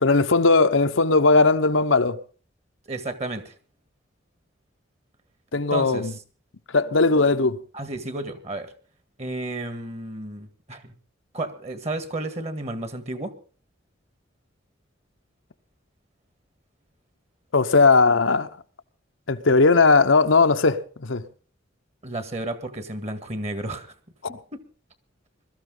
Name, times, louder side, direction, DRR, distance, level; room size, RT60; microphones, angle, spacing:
voice 1, 0.0-2.2 5.5-6.1 6.7-7.6 17.5-18.5 19.3-21.2 24.2-24.4, left 3 dB, 85° left, 1.0 m, -18 dB
voice 2, 2.9-3.5 5.7-6.1 7.7-8.7 9.2-10.9 11.3-13.3 22.0-23.9 24.3-24.6, right 2 dB, 35° right, 1.9 m, -32 dB
21.5 x 13.5 x 3.9 m
head